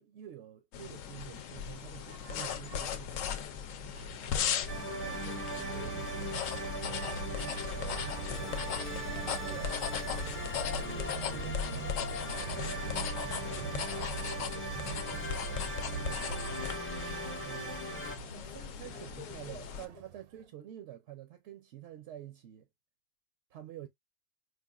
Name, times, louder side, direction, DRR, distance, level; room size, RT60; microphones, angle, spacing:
voice 1, 0.0-3.6 11.3-11.5 17.4-17.8 18.3-22.7 23.5-23.9, right 12 dB, 65° right, 0.7 m, -48 dB
sound 1, 0.7-19.9, left 8 dB, 70° left, 0.9 m, -38 dB
sound 2, 1.3-20.5, right 8 dB, 80° right, 1.1 m, -44 dB
voice 2, 4.3-8.7 9.1-11.4 11.8-16.6 18.3-18.6 18.9-19.8, left 5 dB, 40° left, 0.7 m, -55 dB
sound 3, 4.7-18.2, right 1 dB, 20° left, 0.3 m, -40 dB
4.8 x 2.5 x 2.3 m
omnidirectional pair, 1.6 m